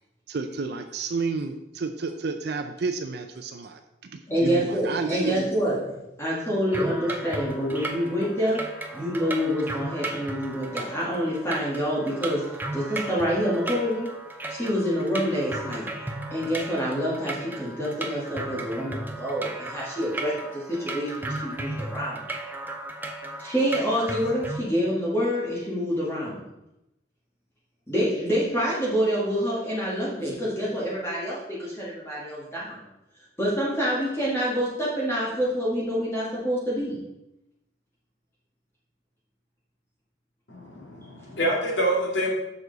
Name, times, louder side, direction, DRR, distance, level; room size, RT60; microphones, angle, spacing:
voice 1, 0.3-5.5, right 4 dB, 60° right, 6 dB, 0.5 m, -31 dB
voice 2, 4.3-8.6 8.9-12.4 12.7-14.1 14.5-15.8 16.3-22.2 23.4-26.5 27.9-32.8 33.4-37.0, equal, 15° left, -7 dB, 1.7 m, -27 dB
sound 1, 6.7-24.6, right 2 dB, 10° right, 0.6 m, -35 dB
voice 3, 40.5-42.3, right 1 dB, 85° left, -2 dB, 2.2 m, -26 dB
7.1 x 6.2 x 4.0 m, 0.90 s
head